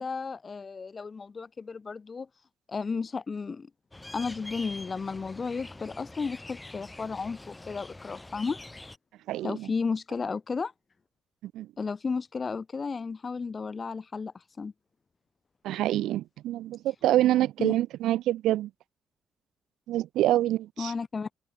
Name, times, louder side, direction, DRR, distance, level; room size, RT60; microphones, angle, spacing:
voice 1, 0.0-2.3 2.7-3.7 4.1-8.6 9.4-10.7 11.8-14.7 17.6-17.7 20.8-21.3, left 4 dB, 40° left, 2.6 m, -33 dB
sound 1, 3.9-9.0, left 2 dB, 15° left, 7.9 m, -45 dB
voice 2, 9.3-9.7 11.5-11.7 15.6-18.7 19.9-20.9, right 14 dB, 90° right, 1.9 m, -26 dB
cardioid pair, 80°, 0 cm